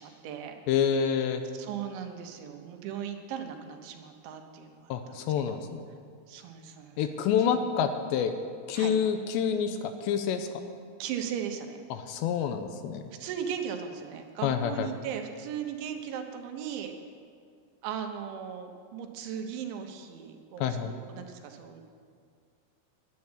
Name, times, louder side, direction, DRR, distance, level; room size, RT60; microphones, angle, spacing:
voice 1, 0.0-0.6 1.6-4.9 5.5-5.7 6.3-7.1 8.8-9.0 11.0-11.8 13.2-16.9 17.8-21.8, right 8 dB, 80° right, 5 dB, 3.3 m, -37 dB
voice 2, 0.7-1.4 4.9-5.9 7.0-8.3 8.7-10.5 11.9-13.0 14.4-14.9 20.6-20.9, left 8 dB, 85° left, 8 dB, 2.8 m, -28 dB
10.0 x 9.6 x 9.7 m, 2.1 s
omnidirectional pair, 5.3 m